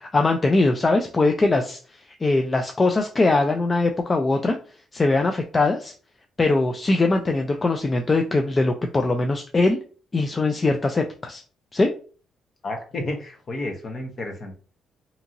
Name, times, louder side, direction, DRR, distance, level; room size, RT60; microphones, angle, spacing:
voice 1, 0.0-4.6 4.9-5.9 6.4-9.8 10.1-11.4 11.7-11.9, left 2 dB, 30° left, 4 dB, 0.3 m, -21 dB
voice 2, 12.6-14.6, left 2 dB, 45° left, 4 dB, 0.8 m, -31 dB
2.8 x 2.6 x 2.5 m, 0.40 s
cardioid pair, 90°, 0 cm